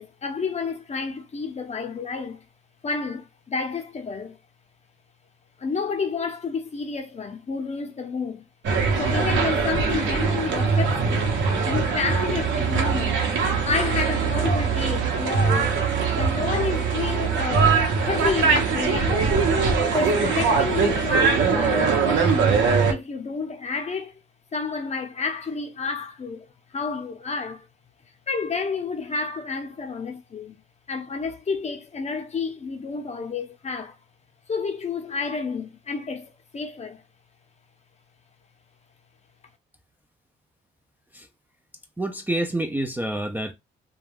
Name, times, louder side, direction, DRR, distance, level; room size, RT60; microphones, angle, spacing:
voice 1, 0.0-2.4 2.8-4.4 5.6-8.5 8.9-11.3 11.7-13.2 13.6-15.7 16.1-19.3 19.9-22.6 22.9-24.2 24.5-26.5 26.7-27.7 28.3-30.6 30.9-34.0 34.5-37.0, left 4 dB, 35° left, 0.7 m, -30 dB
sound 1, 8.6-22.9, right 5 dB, 75° right, 0.8 m, -22 dB
voice 2, 42.0-43.5, right 1 dB, 10° right, 0.4 m, -27 dB
2.3 x 2.3 x 3.4 m
cardioid pair, 90°, 20 cm